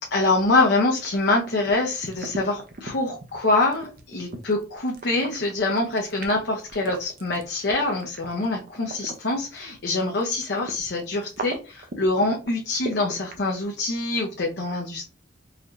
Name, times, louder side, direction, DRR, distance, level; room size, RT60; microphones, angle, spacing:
voice 1, 0.0-15.1, left 2 dB, 65° left, 0 dB, 0.8 m, -25 dB
sound 1, 1.4-9.6 9.9-13.4, right 3 dB, 50° right, 0.7 m, -37 dB
4.0 x 2.6 x 3.1 m, 0.33 s
head